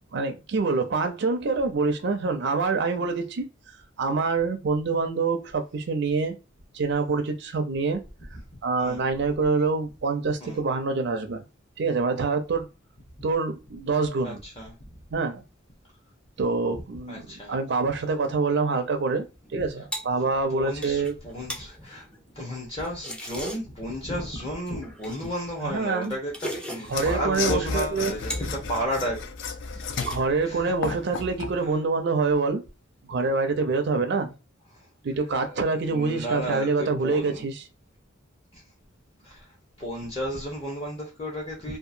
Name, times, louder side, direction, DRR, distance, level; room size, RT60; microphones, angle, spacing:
voice 1, 0.1-3.5 4.0-6.4 6.7-8.0 8.6-11.4 11.8-12.7 13.2-14.4 15.1-15.4 16.4-17.2 17.5-21.1 25.6-26.2 26.9-28.1 29.9-32.6 33.1-34.3 35.0-37.7, right 4 dB, 60° right, 0.4 m, -26 dB
voice 2, 14.2-14.7 17.1-17.6 20.5-22.1 22.3-29.2 29.7-30.1 30.4-30.7 31.6-31.8 35.5-37.4 38.5-38.6 39.2-39.5 39.8-41.8, equal, 30° left, 0.8 m, -33 dB
sound 1, 19.4-23.9 24.7-27.3 27.7-28.6 28.9-29.4 29.7-30.6, equal, 5° left, 0.4 m, -40 dB
Mechanisms / Sawing, 26.9-31.6, left 4 dB, 65° left, 0.4 m, -32 dB
2.8 x 2.4 x 2.5 m
head